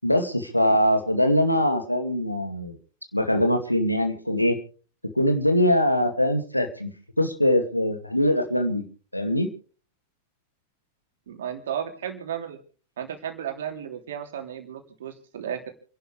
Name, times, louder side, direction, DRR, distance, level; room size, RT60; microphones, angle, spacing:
voice 1, 0.0-2.8 3.1-4.6 5.2-8.8 9.1-9.5, left 1 dB, 90° left, 6 dB, 2.1 m, -22 dB
voice 2, 11.3-12.6 13.0-15.7, right 9 dB, 60° right, 5 dB, 3.1 m, -34 dB
29.5 x 11.5 x 3.3 m, 0.42 s
figure-of-eight pair, 90°, 0 cm